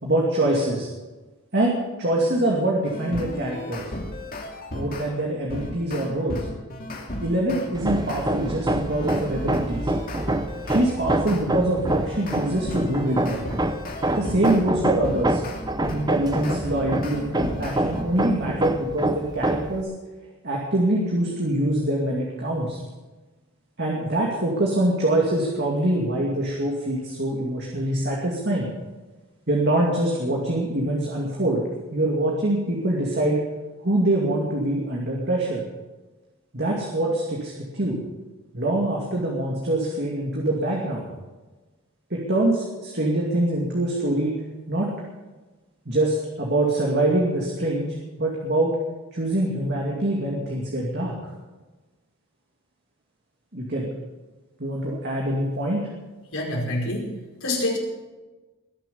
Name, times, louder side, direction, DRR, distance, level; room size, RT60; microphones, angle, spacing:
voice 1, 0.0-0.9 1.5-3.9 4.7-6.4 7.2-9.9 10.6-13.5 14.1-15.4 15.9-19.9 20.4-22.8 23.8-28.7 29.5-31.6 31.9-33.4 33.8-35.6 36.5-38.0 38.5-41.1 42.1-44.3 44.7-44.9 45.9-47.9 48.2-48.8 49.1-51.2 53.5-53.9 54.6-55.9, right 1 dB, 50° right, -2 dB, 2.5 m, -24 dB
sound 1, 2.8-5.1 5.5-11.4 11.9-14.6 15.0-18.0, left 1 dB, 40° left, 2.5 m, -34 dB
Hammer, 7.7-19.8, right 1 dB, 20° right, 0.7 m, -26 dB
voice 2, 56.3-57.1 57.4-57.8, left 1 dB, 70° left, -2 dB, 5.2 m, -26 dB
21.5 x 7.9 x 7.0 m, 1.2 s
head